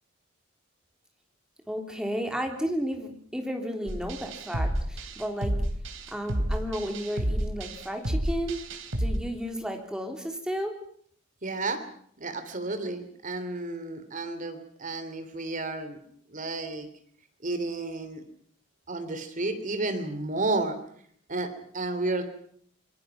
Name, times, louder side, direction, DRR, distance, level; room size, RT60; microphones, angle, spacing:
voice 1, 1.7-5.5 6.1-8.6 9.0-10.7, equal, 5° right, 3 dB, 3.3 m, -33 dB
sound 1, 3.9-9.2, right 1 dB, 70° right, 3.5 m, -30 dB
voice 2, 11.4-11.8 12.2-16.0 16.3-16.9 17.4-18.2 18.9-20.8 21.3-21.5 21.7-22.2, right 2 dB, 40° right, 8 dB, 3.2 m, -31 dB
26.5 x 23.0 x 6.0 m, 0.62 s
head